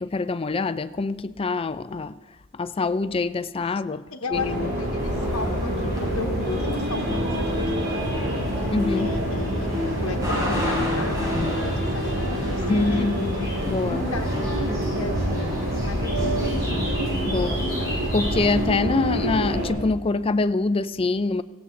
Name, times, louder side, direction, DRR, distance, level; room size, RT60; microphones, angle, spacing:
voice 1, 0.0-2.2 2.5-4.0 4.3-4.7 8.7-9.1 12.7-14.1 17.2-17.6 18.1-21.4, left 3 dB, 25° left, 0.4 m, -25 dB
voice 2, 4.1-8.4 8.9-13.5 14.1-16.9 17.3-17.9, left 3 dB, 85° left, 1.0 m, -35 dB
sound 1, 4.3-19.7, equal, 50° right, 5.1 m, -26 dB
sound 2, 5.0-18.7, equal, 20° right, 4.5 m, -33 dB
18.0 x 17.0 x 3.8 m
head